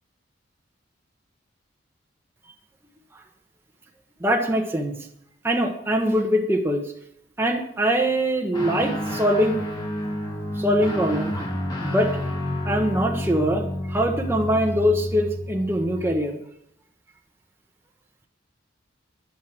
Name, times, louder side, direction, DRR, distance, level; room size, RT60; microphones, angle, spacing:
voice 1, 4.2-5.0 5.4-6.8 7.4-9.6 10.6-11.3 11.8-12.1 12.6-16.4, equal, 10° right, 2 dB, 1.3 m, -23 dB
Guitar, 8.5-16.2, left 1 dB, 20° left, 2.4 m, -30 dB
11.5 x 10.5 x 6.1 m, 0.74 s
head